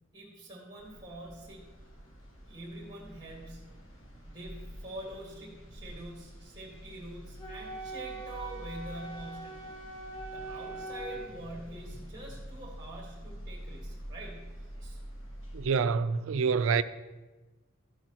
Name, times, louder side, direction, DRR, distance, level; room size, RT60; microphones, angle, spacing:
voice 1, 0.1-1.7 2.5-3.7 4.3-9.7 10.3-15.0, right 1 dB, 20° right, 1.8 m, -45 dB
sound 1, 0.8-15.7, equal, 65° left, 2.2 m, -47 dB
Wind instrument woodwind instrument, 7.4-11.3, right 2 dB, 20° left, 1.6 m, -42 dB
voice 2, 15.5-16.8, right 5 dB, 65° right, 0.4 m, -26 dB
13.0 x 10.5 x 3.0 m
head